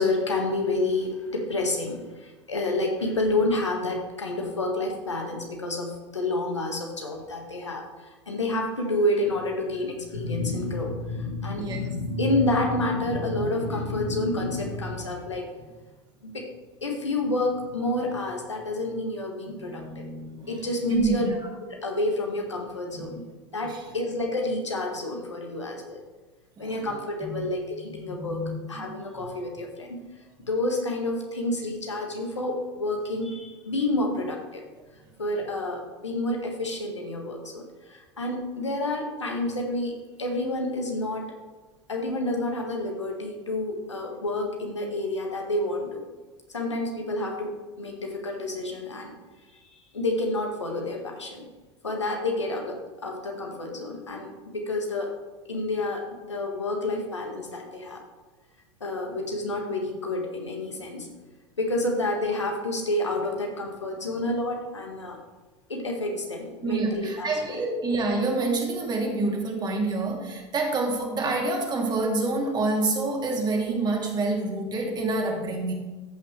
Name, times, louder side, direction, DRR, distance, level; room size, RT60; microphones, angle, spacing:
voice 1, 0.0-7.8 8.3-15.5 16.2-16.5 16.8-20.1 20.5-21.3 21.8-23.2 23.5-26.0 26.6-30.0 30.5-34.6 35.2-37.6 37.9-39.9 40.2-41.3 41.9-46.0 46.5-49.1 49.9-51.4 51.8-55.1 55.5-58.0 58.8-61.1 61.6-65.2 65.7-67.6, left 2 dB, 90° left, 1 dB, 1.6 m, -29 dB
voice 2, 19.5-20.6 20.9-21.4 23.0-23.2 23.6-23.8 26.6-26.9 27.2-27.4 27.9-29.3 66.6-75.7, right 3 dB, 30° right, 1 dB, 2.4 m, -28 dB
14.5 x 5.8 x 3.2 m, 1.2 s
figure-of-eight pair, 80°, 15 cm